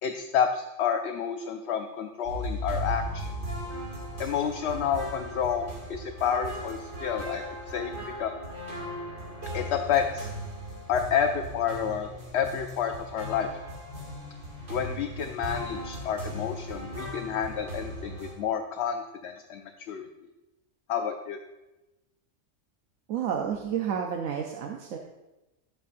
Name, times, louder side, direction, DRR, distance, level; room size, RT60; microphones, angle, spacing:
voice 1, 0.0-3.3 4.2-7.9 8.2-8.3 9.5-10.3 10.9-12.1 12.3-13.5 14.7-20.1 20.9-21.4, left 8 dB, 65° left, 5 dB, 0.8 m, -29 dB
sound 1, 2.2-18.3, equal, 60° right, 2.5 m, -37 dB
voice 2, 23.1-25.0, right 8 dB, 85° right, 2 dB, 1.1 m, -30 dB
11.5 x 8.2 x 2.5 m, 1.0 s
omnidirectional pair, 1.3 m